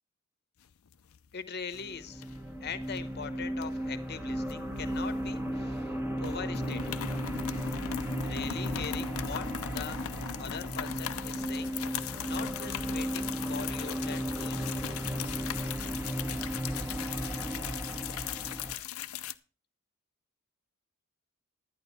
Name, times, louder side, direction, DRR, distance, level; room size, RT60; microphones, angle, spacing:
sound 1, 0.7-1.3 1.6-1.8 2.2-3.0 3.6-5.5 5.8-5.9 6.2-19.3, left 9 dB, 75° left, 0.5 m, -39 dB
voice 1, 1.3-2.2 2.6-7.0 8.2-9.5 9.7-10.0 10.4-11.7 12.2-14.8, left 6 dB, 50° left, 11 dB, 1.0 m, -41 dB
sound 2, 1.7-18.7, equal, 10° right, 1.3 m, -35 dB
11.0 x 9.5 x 4.3 m, 0.36 s
head